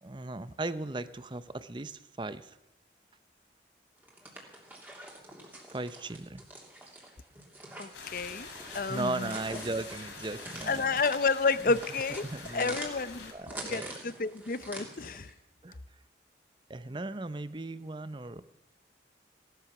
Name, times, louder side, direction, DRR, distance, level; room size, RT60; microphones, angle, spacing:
voice 1, 0.0-2.6 5.7-6.4 8.9-11.0 11.7-11.8 12.2-13.0 13.3-13.9 15.6-15.8 16.7-18.4, right 2 dB, 25° right, 14 dB, 0.6 m, -37 dB
sound 1, 4.0-15.3, right 1 dB, 10° right, 2.8 m, -46 dB
voice 2, 7.8-9.3 10.7-12.3 12.5-13.3 13.6-15.3, left 4 dB, 50° left, 16 dB, 0.7 m, -30 dB
sound 2, 7.9-13.3, left 4 dB, 80° left, 3.2 m, -46 dB
17.5 x 12.5 x 6.0 m, 0.93 s
head